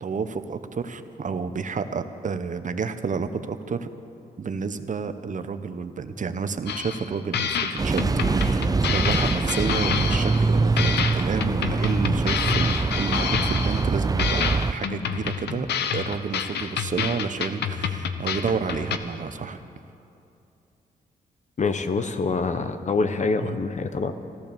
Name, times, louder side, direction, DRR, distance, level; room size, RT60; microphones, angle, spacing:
voice 1, 0.0-3.9 4.4-15.7 15.9-19.6 23.4-23.6, right 5 dB, 50° right, 10 dB, 0.9 m, -30 dB
sound 1, 6.7-7.1 7.3-10.5 10.8-13.9 14.2-19.0, left 7 dB, 80° left, 0.8 m, -28 dB
sound 2, 7.8-14.7, right 3 dB, 20° right, 0.5 m, -24 dB
voice 2, 21.6-24.1, left 4 dB, 45° left, 9 dB, 1.0 m, -25 dB
14.0 x 13.5 x 7.0 m, 2.7 s
cardioid pair, 60°, 17 cm